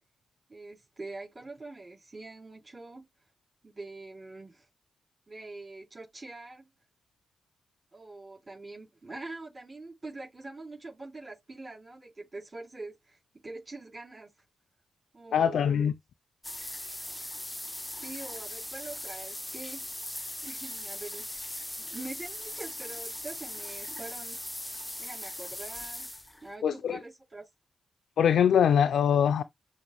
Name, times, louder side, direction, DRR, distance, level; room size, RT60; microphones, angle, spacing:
voice 1, 0.5-3.0 3.6-4.7 5.3-6.7 7.9-14.3 15.1-15.9 18.0-19.8 20.4-21.4 21.8-24.4 25.0-26.1 26.4-27.4, right 2 dB, 35° right, 3.8 m, -44 dB
voice 2, 15.3-15.9 26.6-27.0 28.2-29.4, left 8 dB, 80° left, 0.4 m, -23 dB
sound 1, 16.4-26.5, left 1 dB, 10° left, 0.6 m, -39 dB
7.0 x 2.5 x 3.0 m
cardioid pair, 60°, 0 cm